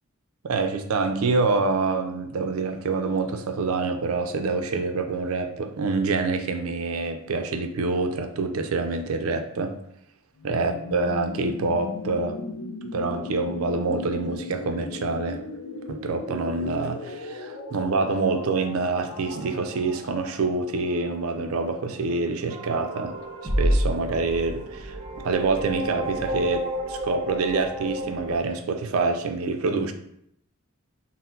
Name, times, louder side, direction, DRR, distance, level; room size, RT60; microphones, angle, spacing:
voice 1, 0.4-9.8 10.4-12.4 12.9-15.4 15.9-23.2 23.6-25.0 25.2-29.9, right 3 dB, 70° right, 6 dB, 0.4 m, -26 dB
sound 1, 10.4-22.2, left 3 dB, 70° left, 0.4 m, -38 dB
sound 2, 22.5-28.4, equal, 25° right, 0.9 m, -29 dB
4.3 x 2.0 x 3.8 m, 0.73 s
head